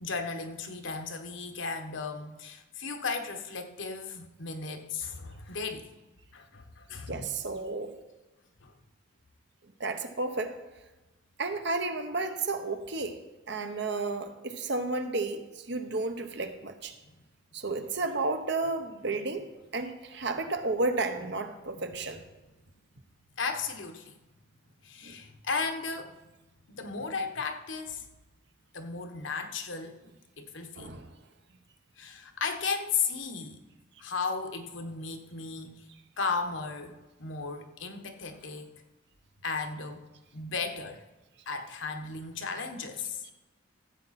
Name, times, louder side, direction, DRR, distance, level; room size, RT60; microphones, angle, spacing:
voice 1, 0.0-5.9 6.3-7.3 8.6-8.7 21.7-22.3 23.4-24.2 24.8-26.2 26.7-28.0 28.7-30.0 30.4-31.0 32.0-33.6 34.0-35.9 36.2-38.7 39.4-40.0 40.3-41.0 41.5-43.2, left 5 dB, 70° left, 6 dB, 1.1 m, -35 dB
voice 2, 7.1-7.9 9.8-10.6 11.4-13.2 13.5-16.9 17.5-22.2 25.0-25.1 30.8-31.1, right 3 dB, 60° right, 7 dB, 1.0 m, -32 dB
14.5 x 8.0 x 4.2 m, 1.1 s
head